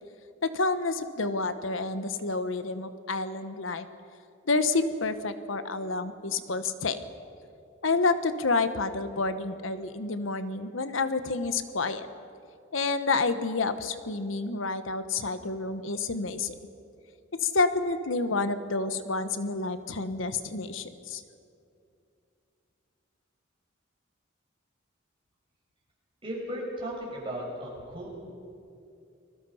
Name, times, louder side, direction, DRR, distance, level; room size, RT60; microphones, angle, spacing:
voice 1, 0.4-3.8 4.5-7.0 7.8-12.1 12.7-16.5 17.4-21.2, left 3 dB, 80° left, 11 dB, 1.1 m, -29 dB
voice 2, 26.2-28.1, equal, 25° right, -3 dB, 6.6 m, -36 dB
29.5 x 21.5 x 5.7 m, 2.6 s
head